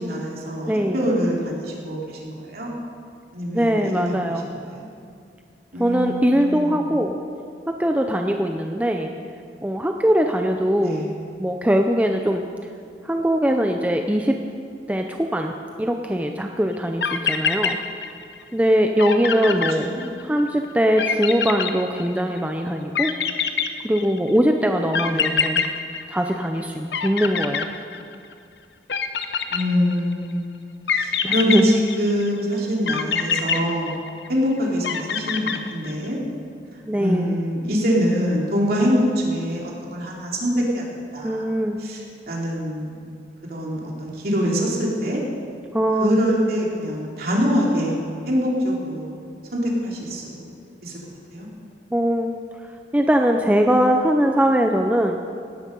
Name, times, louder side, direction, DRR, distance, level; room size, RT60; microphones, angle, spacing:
voice 1, 0.0-2.7 3.3-4.2 4.7-4.9 5.7-7.0 10.8-11.1 19.8-20.1 25.0-25.8 29.5-30.5 30.9-33.9 34.3-36.2 36.9-40.8 41.1-41.5 41.8-43.0 43.5-45.2 46.0-48.0 48.2-49.1 49.5-50.5 50.8-50.9 51.3-51.5, equal, 55° right, -3 dB, 3.2 m, -24 dB
voice 2, 0.7-1.1 3.5-4.5 5.8-7.1 7.7-9.1 9.6-11.1 11.4-12.4 13.0-14.4 14.9-17.8 18.5-19.9 20.2-23.1 23.8-25.6 26.1-27.7 31.2-31.8 36.9-37.4 41.2-41.8 45.7-46.2 51.9-52.4 52.9-55.2, equal, 10° right, 4 dB, 0.5 m, -21 dB
sound 1, 16.7-16.8 17.0-18.4 18.7-18.8 19.0-20.4 21.0-22.4 22.9-24.3 24.9-26.6 26.9-28.3 28.9-30.1 30.9-32.3 32.9-34.4 34.8-36.1, left 6 dB, 65° left, 0.8 m, -25 dB
17.5 x 12.5 x 5.4 m, 2.4 s
head